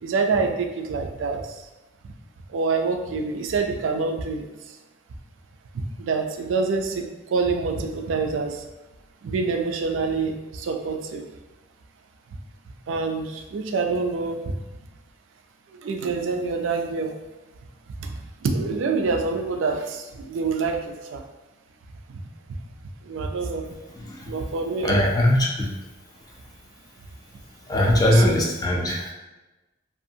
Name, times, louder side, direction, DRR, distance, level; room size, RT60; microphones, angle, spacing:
voice 1, 0.0-1.4 2.5-4.5 6.0-7.1 7.3-8.6 9.2-11.2 12.9-14.5 15.8-17.1 18.0-18.1 18.4-20.8 21.1-21.2 22.1-22.3 23.1-23.7 24.3-25.0 28.1-28.2, right 4 dB, 75° right, 4 dB, 0.3 m, -26 dB
voice 2, 23.9-24.3 24.8-25.7 27.7-29.1, left 1 dB, 20° left, -1 dB, 0.3 m, -21 dB
2.5 x 2.4 x 2.6 m, 1.1 s
head